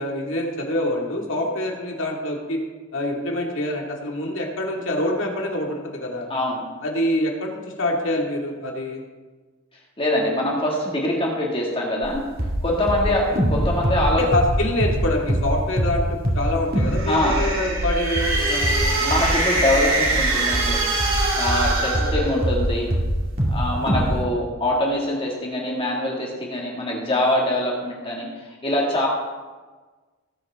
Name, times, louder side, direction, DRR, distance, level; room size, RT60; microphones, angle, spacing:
voice 1, 0.0-2.6 2.9-6.3 6.8-9.0 13.3-13.4 14.0-18.9 22.0-22.4 23.8-24.2, left 1 dB, 60° left, 0 dB, 2.2 m, -26 dB
voice 2, 6.3-6.6 10.0-12.2 12.6-14.2 17.1-17.4 19.0-20.8 21.4-22.9 23.5-29.1, left 1 dB, 25° left, -3 dB, 2.2 m, -24 dB
sound 1, 12.0-12.1 12.4-12.6 12.9-15.0 15.3-15.5 15.8-16.5 16.7-17.0 17.2-22.7 22.9-23.6 23.9-24.1, right 1 dB, 40° right, 2.3 m, -23 dB
sound 2, 16.8-22.8, right 2 dB, 70° right, 2.8 m, -24 dB
18.5 x 8.0 x 3.7 m, 1.3 s
head